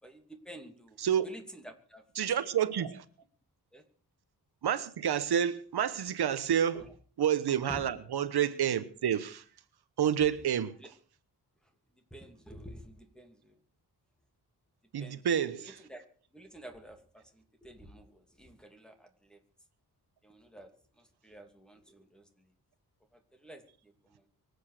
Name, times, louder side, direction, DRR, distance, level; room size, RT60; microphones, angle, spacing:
voice 1, 0.0-1.0 1.2-2.3 3.7-3.8 6.7-6.9 7.7-7.9 10.7-10.9 11.6-13.6 15.0-15.2 15.6-16.1 16.3-19.4 20.2-22.5 23.1-24.3, right 1 dB, ahead, 2.7 m, -51 dB
voice 2, 2.2-3.0 4.6-6.8 7.2-9.4 10.0-10.7 14.9-15.7, right 9 dB, 80° right, 1.2 m, -29 dB
24.0 x 8.4 x 6.7 m
wide cardioid pair, 135°, 38 cm